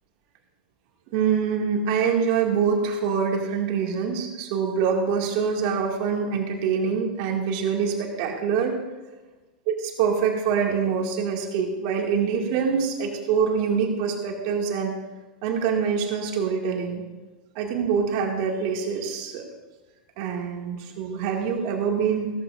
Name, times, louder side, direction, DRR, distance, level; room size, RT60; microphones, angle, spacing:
voice 1, 1.1-8.8 9.7-14.9 15.4-17.0 17.5-19.4 20.2-22.3, right 6 dB, 50° right, 1 dB, 2.4 m, -25 dB
15.0 x 14.5 x 2.7 m, 1.2 s
hypercardioid pair, 95°, 5 cm